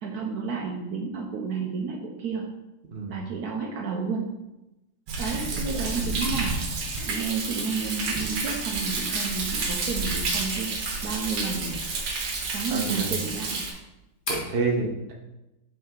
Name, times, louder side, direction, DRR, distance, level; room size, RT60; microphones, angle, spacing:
voice 1, 0.0-2.5 3.1-4.3 5.2-6.6 7.0-10.7 11.0-11.9 12.5-13.6, right 5 dB, 70° right, 1 dB, 1.1 m, -31 dB
Thunder, 5.1-13.7, right 3 dB, 85° right, 1.7 m, -30 dB
Mechanisms, 6.2-14.5, left 1 dB, 30° left, 1.3 m, -42 dB
voice 2, 12.7-13.2 14.3-15.1, right 4 dB, 40° right, 0 dB, 1.0 m, -29 dB
5.5 x 5.4 x 3.7 m, 0.96 s
omnidirectional pair, 1.9 m